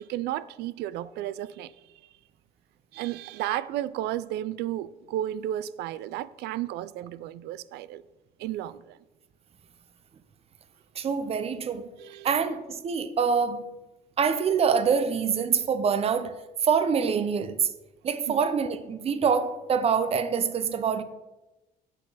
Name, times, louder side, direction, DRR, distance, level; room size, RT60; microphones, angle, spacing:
voice 1, 0.0-1.7 2.9-8.0 8.4-9.0 12.0-12.4 18.3-18.4, right 13 dB, 80° right, 0.4 m, -33 dB
voice 2, 11.0-11.9 12.2-13.7 14.2-16.4 16.6-17.7 18.0-21.0, right 6 dB, 35° right, 0.6 m, -25 dB
8.0 x 6.2 x 4.0 m
cardioid pair, 110°, 17 cm